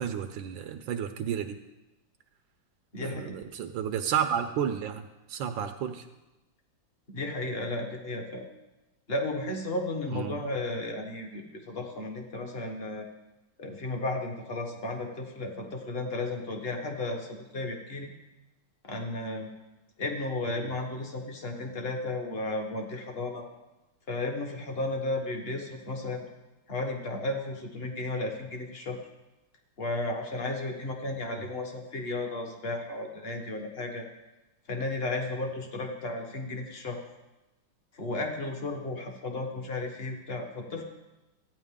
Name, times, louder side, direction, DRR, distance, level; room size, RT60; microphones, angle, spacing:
voice 1, 0.0-1.6 3.0-5.0 5.3-6.0 10.0-10.4 20.6-20.7, right 8 dB, 80° right, 7 dB, 1.3 m, -31 dB
voice 2, 2.9-3.4 7.1-8.5 9.1-13.1 13.6-18.1 18.8-19.5 20.0-23.5 24.1-26.2 26.7-29.0 29.8-34.1 34.7-37.0 37.9-40.8, left 2 dB, 35° left, 3 dB, 1.2 m, -34 dB
14.5 x 9.3 x 3.6 m, 1.0 s
omnidirectional pair, 2.1 m